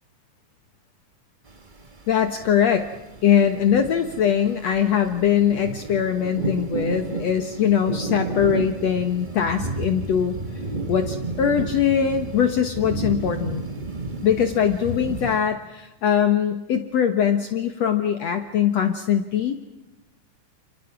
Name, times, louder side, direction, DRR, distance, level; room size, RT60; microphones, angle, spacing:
sound 1, 1.5-15.4, right 3 dB, 35° right, 0.7 m, -32 dB
voice 1, 2.1-2.9 3.2-10.4 10.9-13.6 14.2-19.5, left 8 dB, 60° left, 8 dB, 2.2 m, -21 dB
30.0 x 30.0 x 6.1 m, 0.98 s
omnidirectional pair, 3.8 m